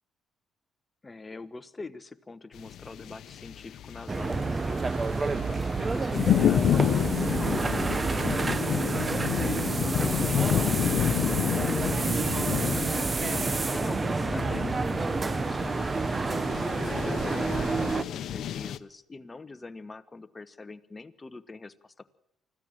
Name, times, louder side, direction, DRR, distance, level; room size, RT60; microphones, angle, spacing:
voice 1, 1.0-5.1 5.4-13.4 13.7-22.1, left 3 dB, 25° left, 12 dB, 1.2 m, -44 dB
sound 1, 2.6-18.8, left 10 dB, 75° left, 0.8 m, -30 dB
sound 2, 4.1-18.0, right 3 dB, 30° right, 0.9 m, -29 dB
25.0 x 15.0 x 7.6 m, 0.81 s
cardioid pair, 90°, 0 cm